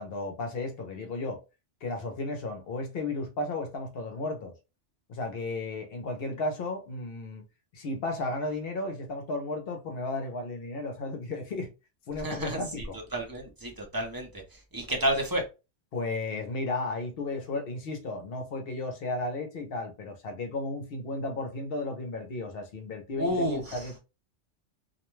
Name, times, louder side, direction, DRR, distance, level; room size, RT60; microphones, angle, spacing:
voice 1, 0.0-1.4 1.8-4.5 5.1-7.4 7.7-11.7 12.1-13.0 15.9-24.0, left 2 dB, 60° left, 0.8 m, -34 dB
voice 2, 12.2-12.9 13.1-15.4 23.1-23.9, right 1 dB, 25° right, 0.5 m, -31 dB
2.4 x 2.2 x 3.0 m
omnidirectional pair, 1.2 m